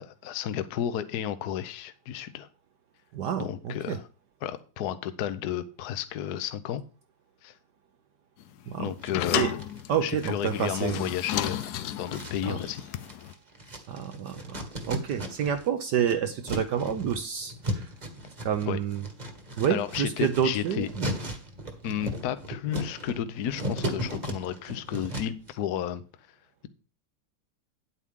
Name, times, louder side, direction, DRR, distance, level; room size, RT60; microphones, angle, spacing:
voice 1, 0.0-2.5 3.4-4.1 4.4-6.8 7.4-7.5 8.8-9.5 10.0-12.8 18.7-18.8 19.7-20.9 21.8-26.0, left 10 dB, 60° left, 12 dB, 1.1 m, -32 dB
voice 2, 3.1-4.0 8.7-8.9 9.3-9.5 9.9-11.0 12.5-12.6 13.9-17.9 18.4-19.0 19.6-21.1, right 8 dB, 65° right, 9 dB, 1.1 m, -29 dB
sound 1, 8.4-13.3, left 11 dB, 90° left, 0.8 m, -33 dB
sound 2, 9.0-9.8 10.2-15.7 15.9-25.5, equal, 25° right, 1.2 m, -37 dB
9.8 x 8.4 x 3.6 m, 0.36 s
omnidirectional pair, 2.4 m